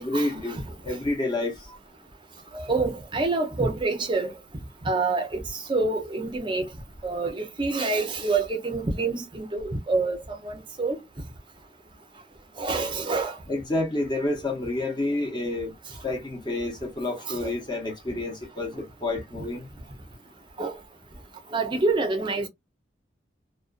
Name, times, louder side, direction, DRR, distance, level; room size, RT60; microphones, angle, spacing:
voice 1, 0.0-1.5 13.5-15.7 16.0-19.7, left 2 dB, 25° left, 0.8 m, -29 dB
voice 2, 2.5-4.4 4.9-5.4 5.7-6.6 7.0-10.2 10.4-11.0 12.6-13.3 17.3-17.5 20.6-20.7 21.5-22.5, right 3 dB, 25° right, 0.6 m, -26 dB
2.4 x 2.2 x 2.4 m
head